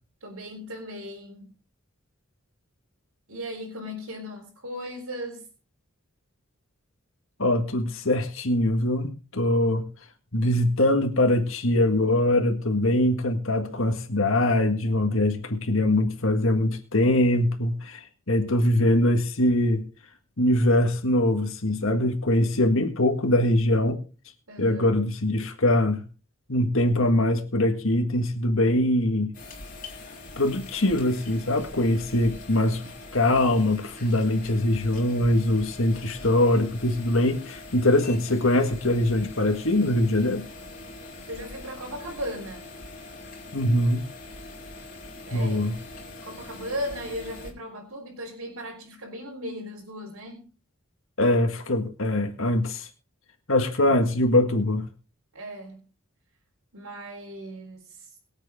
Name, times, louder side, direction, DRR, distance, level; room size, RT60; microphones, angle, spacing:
voice 1, 0.2-1.6 3.3-5.5 24.5-24.9 41.3-42.7 45.2-45.7 46.2-50.5 55.3-55.8 56.7-58.2, equal, 85° right, -3 dB, 4.1 m, -37 dB
voice 2, 7.4-9.9 10.3-19.8 20.4-24.0 24.6-26.0 26.5-29.3 30.4-32.8 33.1-40.4 43.5-44.1 45.3-45.8 51.2-52.9 53.5-54.9, left 1 dB, 70° left, 4 dB, 1.8 m, -23 dB
sound 1, 29.3-47.5, left 2 dB, 40° left, 3.4 m, -43 dB
23.0 x 8.1 x 3.7 m, 0.34 s
head